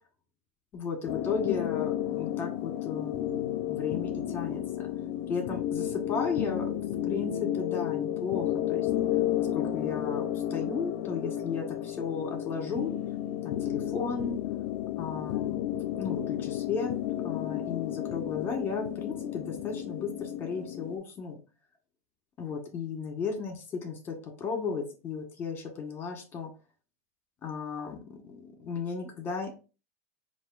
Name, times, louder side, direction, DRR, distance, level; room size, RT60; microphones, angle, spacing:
voice 1, 0.7-4.9 5.3-6.7 7.0-8.9 9.4-10.2 10.5-12.9 13.4-14.4 15.0-15.6 15.9-16.9 17.2-21.4 22.4-26.5 27.4-29.6, left 5 dB, 25° left, 4 dB, 1.6 m, -35 dB
sound 1, 1.1-21.0, left 12 dB, 65° left, 0.5 m, -32 dB
4.7 x 2.7 x 4.0 m, 0.33 s
supercardioid pair, 125°, 8 cm